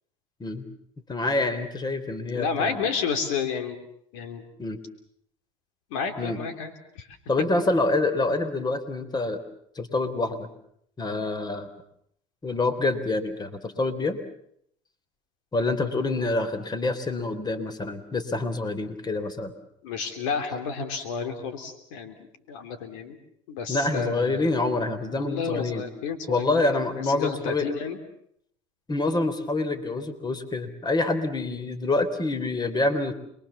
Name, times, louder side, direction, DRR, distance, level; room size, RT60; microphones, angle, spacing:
voice 1, 1.1-2.9 4.6-4.8 6.2-6.4 7.3-9.4 9.8-10.5 11.0-11.7 12.4-14.2 15.5-19.5 23.7-25.8 26.3-27.7 28.9-33.1, left 2 dB, 25° left, 10 dB, 3.6 m, -26 dB
voice 2, 2.3-3.8 4.1-4.4 5.9-7.1 19.8-22.2 22.5-23.2 23.5-24.5 25.1-26.8 27.1-28.0, left 5 dB, 85° left, 8 dB, 3.4 m, -31 dB
27.5 x 22.5 x 7.2 m, 0.70 s
supercardioid pair, 85°, 16 cm